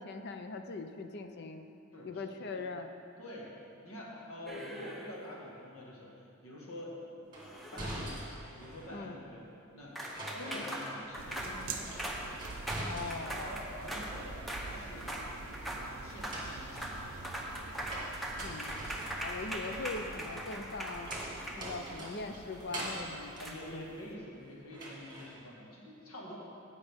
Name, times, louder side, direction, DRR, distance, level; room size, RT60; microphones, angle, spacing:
voice 1, 0.0-1.7 2.0-2.9 8.9-9.2 12.9-13.4 18.4-18.7 19.1-21.1 21.5-23.8, left 3 dB, 50° left, 7 dB, 0.5 m, -41 dB
voice 2, 1.9-2.6 3.2-3.5 3.8-7.3 7.6-8.2 8.6-10.0 10.3-11.9 13.3-17.4 21.4-21.7 23.4-26.4, left 1 dB, 75° left, -4 dB, 1.8 m, -47 dB
sound 1, 4.5-5.3 7.4-8.3 10.0-14.1 14.5-14.7 15.0-15.3 15.5-15.8 16.1-16.4 16.7-17.0 17.2-22.0 23.4-23.5, right 1 dB, ahead, 0.8 m, -40 dB
sound 2, 7.3-9.0 10.0-11.3 11.6-13.5 13.8-14.6 16.0-24.3 24.7-25.3, right 1 dB, 20° right, 1.7 m, -44 dB
sound 3, 11.2-24.1, right 3 dB, 75° right, 0.6 m, -47 dB
16.0 x 5.5 x 3.6 m, 2.7 s
head